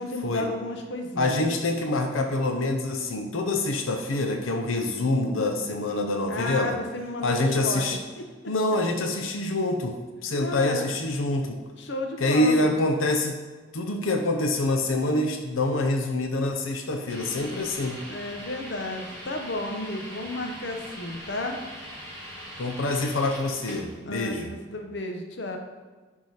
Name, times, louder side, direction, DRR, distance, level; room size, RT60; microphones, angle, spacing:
voice 1, 0.0-1.5 6.3-8.0 10.4-10.9 11.8-12.7 18.1-21.6 24.0-25.6, left 2 dB, 60° left, 3 dB, 0.9 m, -32 dB
voice 2, 1.2-6.8 7.2-8.0 8.5-11.6 12.2-13.4 13.7-18.0 22.6-24.5, left 2 dB, 85° left, 4 dB, 0.8 m, -26 dB
sound 1, 17.1-24.0, equal, 10° left, 2.3 m, -41 dB
10.5 x 3.7 x 4.9 m, 1.4 s
head